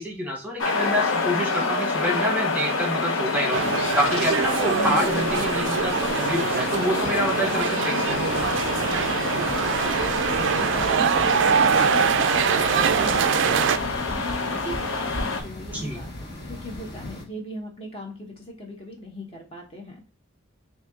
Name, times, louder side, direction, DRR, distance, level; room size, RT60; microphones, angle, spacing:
voice 1, 0.0-3.6 3.9-8.2 15.7-16.0, equal, 10° right, -1 dB, 1.1 m, -27 dB
sound 1, 0.6-15.4, left 3 dB, 85° left, 0.7 m, -27 dB
sound 2, 3.5-13.8, right 7 dB, 65° right, 0.3 m, -24 dB
sound 3, 8.1-17.2, left 1 dB, 50° left, 1.3 m, -37 dB
voice 2, 9.3-20.1, equal, 30° left, 0 dB, 0.9 m, -40 dB
4.4 x 2.7 x 3.5 m, 0.35 s
head